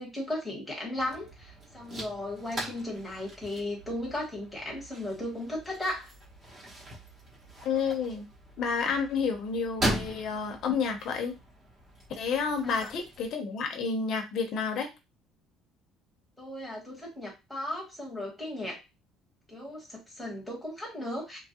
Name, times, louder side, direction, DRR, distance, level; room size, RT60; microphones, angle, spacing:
voice 1, 0.0-6.1 12.6-12.9 16.4-18.8 19.5-21.4, left 1 dB, ahead, -3 dB, 1.0 m, -36 dB
sound 1, 1.0-13.3, right 1 dB, 30° right, 0.9 m, -40 dB
voice 2, 7.6-8.2 8.6-11.4 12.2-14.9, left 5 dB, 45° left, 3 dB, 0.6 m, -30 dB
2.9 x 2.3 x 2.8 m, 0.25 s
cardioid pair, 180°, 0 cm